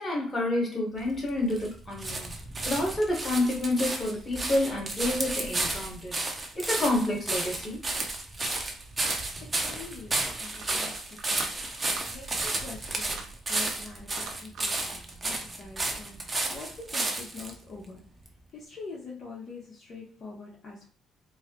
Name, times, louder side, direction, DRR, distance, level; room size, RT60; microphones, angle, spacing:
voice 1, 0.0-2.3 2.7-6.1 6.5-7.8, left 1 dB, 30° left, -1 dB, 1.5 m, -28 dB
sound 1, 1.0-17.5 18.3-18.4, right 2 dB, 25° right, 0.8 m, -32 dB
voice 2, 9.4-11.6 12.0-18.1 18.5-20.9, left 4 dB, 50° left, -4 dB, 1.1 m, -45 dB
sound 2, 10.4-10.9 11.2-11.5 11.8-12.0 12.3-12.5 13.0-13.8 14.1-14.9, right 4 dB, 80° right, 0.7 m, -42 dB
4.5 x 2.2 x 3.0 m, 0.39 s
cardioid pair, 90°, 0 cm